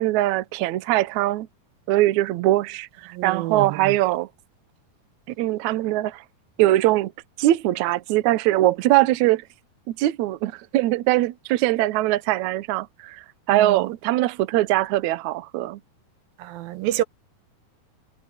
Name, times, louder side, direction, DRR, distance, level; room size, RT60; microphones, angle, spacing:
voice 1, 0.0-1.5 1.9-4.3 5.4-6.2 6.6-7.1 7.4-9.4 9.9-15.8, right 16 dB, 70° right, 1.9 m, -22 dB
voice 2, 3.1-4.0 13.5-13.9 16.4-17.0, right 14 dB, 90° right, 2.6 m, -28 dB
omnidirectional pair, 4.2 m